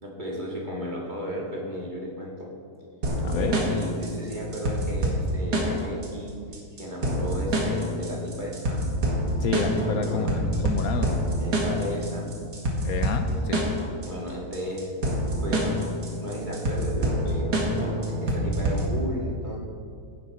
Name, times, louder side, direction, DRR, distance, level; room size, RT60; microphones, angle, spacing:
voice 1, 0.0-2.5 3.3-6.4 6.8-8.8 9.9-10.4 11.4-12.3 13.3-13.4 14.0-14.9 15.2-15.8 16.0-17.5 17.8-19.6, equal, 30° right, -3 dB, 2.1 m, -34 dB
sound 1, 3.0-19.0, right 1 dB, 90° right, 2.5 m, -27 dB
voice 2, 3.2-3.6 9.4-11.3 12.8-13.7, left 6 dB, 70° left, 7 dB, 1.1 m, -30 dB
16.5 x 10.5 x 4.2 m, 2.4 s
omnidirectional pair, 1.7 m